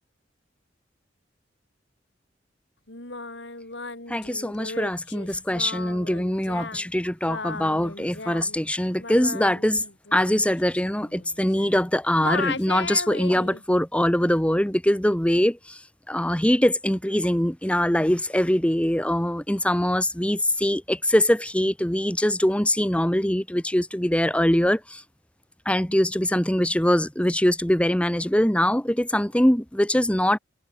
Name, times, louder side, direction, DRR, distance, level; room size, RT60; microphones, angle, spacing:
Singing, 2.9-11.9 12.2-13.6, left 3 dB, 70° left, 6.7 m, -36 dB
voice 1, 4.1-9.8 10.1-15.8 16.1-25.0 25.6-30.4, left 1 dB, 5° left, 1.4 m, -23 dB
head